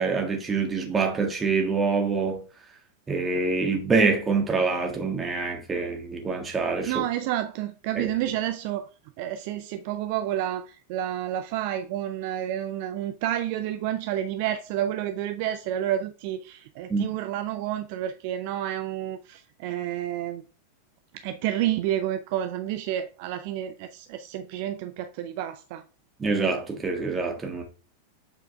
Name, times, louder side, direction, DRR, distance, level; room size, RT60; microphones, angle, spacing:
voice 1, 0.0-2.4 3.1-7.0 7.9-8.1 16.9-17.1 26.2-27.6, right 4 dB, 15° right, 1.7 m, -25 dB
voice 2, 6.9-8.9 9.2-20.4 21.1-25.8, right 12 dB, 45° right, 0.5 m, -30 dB
7.9 x 4.5 x 3.4 m
figure-of-eight pair, 90°, 0 cm